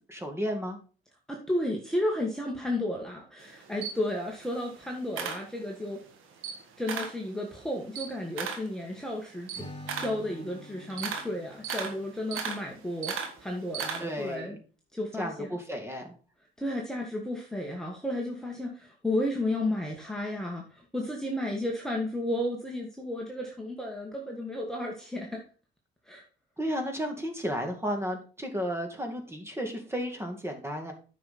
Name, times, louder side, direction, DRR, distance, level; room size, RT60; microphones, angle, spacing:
voice 1, 0.1-0.8 14.0-14.5 15.2-16.1 26.6-30.9, equal, 15° right, 4 dB, 2.2 m, -33 dB
voice 2, 1.3-6.0 6.8-9.7 10.0-14.6 14.9-15.6 16.6-25.4 26.0-26.2, left 1 dB, 5° left, -1 dB, 1.6 m, -33 dB
Camera, 3.4-6.0 6.3-7.2 7.6-14.3, right 6 dB, 90° right, 1.7 m, -37 dB
Acoustic guitar / Strum, 9.5-12.8, left 1 dB, 25° left, 3.5 m, -47 dB
9.3 x 5.9 x 4.3 m, 0.38 s
cardioid pair, 90°, 20 cm